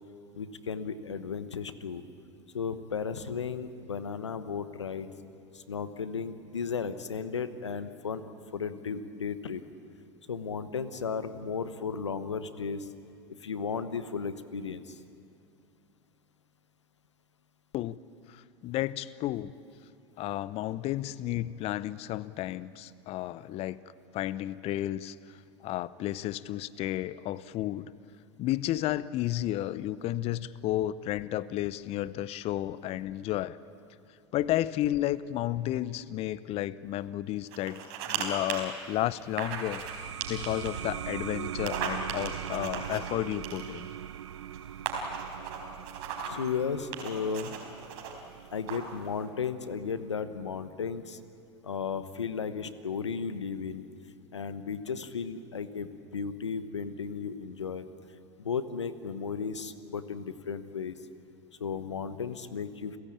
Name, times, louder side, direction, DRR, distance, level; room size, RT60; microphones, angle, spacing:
voice 1, 0.3-2.0 2.5-5.1 5.5-8.2 8.5-9.6 10.3-12.9 13.4-15.0 46.2-47.6 48.5-51.2 51.6-53.9 54.3-57.9 58.4-61.0 61.6-63.0, left 6 dB, 90° left, 12 dB, 1.1 m, -35 dB
voice 2, 18.3-19.5 20.2-23.8 24.1-25.2 25.6-27.9 28.4-33.6 34.3-43.9, left 14 dB, 45° left, 19 dB, 0.7 m, -32 dB
sound 1, 37.5-38.2 38.5-38.6 39.4-39.9 40.2-40.8 41.5-43.9 44.5-44.6 44.9-46.4 46.9-48.1 48.7-49.0, right 8 dB, 60° right, 4.2 m, -36 dB
sound 2, 39.2-50.4, right 10 dB, 85° right, 0.6 m, -41 dB
29.0 x 16.0 x 8.7 m, 2.5 s
hypercardioid pair, 85°, 14 cm